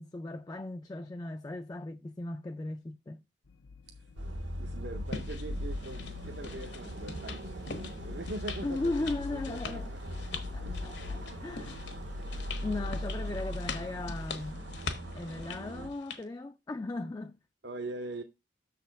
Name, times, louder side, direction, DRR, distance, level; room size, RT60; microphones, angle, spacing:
voice 1, 0.0-3.2 8.6-9.9 10.5-11.8 12.6-14.8 15.1-17.4, left 2 dB, 20° left, 0.3 m, -37 dB
sound 1, 3.5-14.5, left 5 dB, 85° left, 0.6 m, -48 dB
sound 2, 4.2-15.9, equal, 85° right, 1.4 m, -40 dB
voice 2, 4.6-7.6 8.0-8.9 9.3-10.2 10.6-11.0 11.6-11.7 12.6-12.9 17.6-18.2, right 2 dB, 65° right, 0.7 m, -42 dB
sound 3, 5.1-16.2, left 4 dB, 70° left, 1.1 m, -44 dB
6.6 x 4.1 x 6.3 m
head